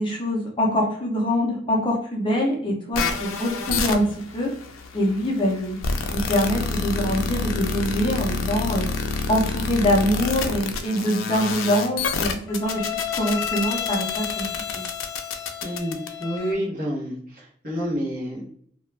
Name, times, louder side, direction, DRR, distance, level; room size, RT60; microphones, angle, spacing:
voice 1, 0.0-4.5 4.9-5.8 6.1-8.9 9.3-14.5 14.7-14.8, equal, 25° left, -1 dB, 0.5 m, -24 dB
sound 1, 2.9-16.5, left 5 dB, 85° left, 0.4 m, -28 dB
voice 2, 15.3-18.4, equal, 45° right, -3 dB, 0.8 m, -29 dB
2.3 x 2.1 x 3.1 m, 0.62 s
head